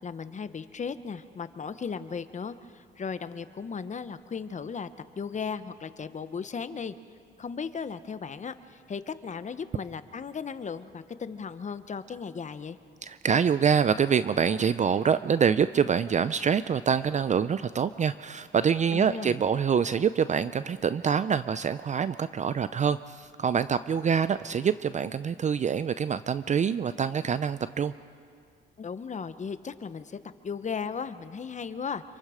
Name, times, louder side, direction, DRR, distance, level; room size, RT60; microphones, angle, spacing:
voice 1, 0.0-4.9 5.2-6.9 7.4-12.8 18.9-19.4 28.8-32.0, left 6 dB, 35° left, 12 dB, 1.0 m, -36 dB
voice 2, 13.0-27.9, right 7 dB, 35° right, 14 dB, 0.5 m, -25 dB
26.5 x 24.0 x 5.0 m, 2.3 s
cardioid pair, 90°, 20 cm